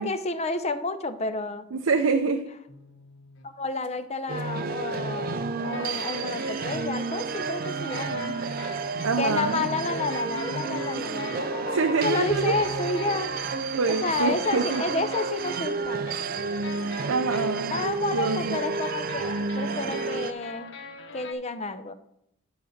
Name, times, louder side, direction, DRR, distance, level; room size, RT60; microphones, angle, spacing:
voice 1, 0.0-1.7 3.4-8.4 9.2-13.3 13.9-16.1 17.7-20.7 21.1-21.9, left 3 dB, 30° left, 11 dB, 0.6 m, -30 dB
voice 2, 1.7-2.4 9.0-9.7 11.7-12.5 13.7-14.8 17.1-17.8 18.1-18.6, right 4 dB, 90° right, 5 dB, 0.6 m, -25 dB
sound 1, 2.7-3.5 3.8-3.9 4.4-4.5 4.9-5.0 5.7-21.3, left 3 dB, 60° left, 0.9 m, -43 dB
sound 2, 4.3-20.3, right 4 dB, 45° right, 0.4 m, -31 dB
10.0 x 4.1 x 6.5 m, 0.78 s
head